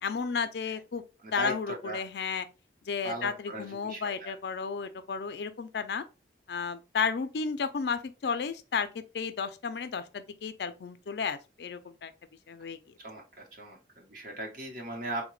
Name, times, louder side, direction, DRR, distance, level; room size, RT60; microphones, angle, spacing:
voice 1, 0.0-1.0 1.3-2.5 2.9-6.0 6.5-12.1 12.5-12.8, left 5 dB, 65° left, 0.4 m, -33 dB
voice 2, 1.2-2.0 3.0-4.3 13.0-15.2, right 1 dB, 50° right, 0.9 m, -38 dB
3.8 x 2.1 x 3.1 m
head